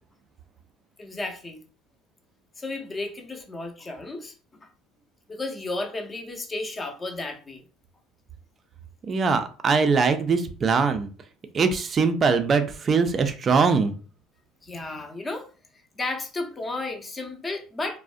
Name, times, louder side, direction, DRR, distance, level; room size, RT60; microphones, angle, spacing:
voice 1, 1.0-1.6 2.6-4.3 4.6-4.7 5.3-7.6 14.6-15.5 16.0-18.0, left 2 dB, 20° left, 4 dB, 0.6 m, -33 dB
voice 2, 9.1-11.1 11.5-13.9, right 5 dB, 35° right, 8 dB, 0.4 m, -22 dB
2.5 x 2.0 x 2.4 m, 0.37 s
supercardioid pair, 105°, 0 cm